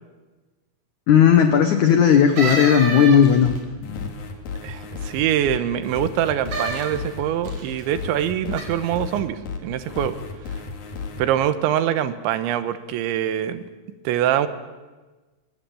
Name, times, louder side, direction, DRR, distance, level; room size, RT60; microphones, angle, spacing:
voice 1, 1.1-3.5 3.8-4.1, left 8 dB, 80° left, 8 dB, 1.7 m, -15 dB
sound 1, 2.4-3.6 6.5-6.9 7.5-7.8 8.5-8.6, right 3 dB, 40° right, 4.6 m, -27 dB
sound 2, 3.5-11.2, left 5 dB, 55° left, 3.6 m, -33 dB
voice 2, 4.6-10.2 11.2-13.6 14.0-14.5, right 11 dB, 80° right, 12 dB, 3.4 m, -24 dB
23.5 x 19.5 x 8.4 m, 1.2 s
omnidirectional pair, 5.3 m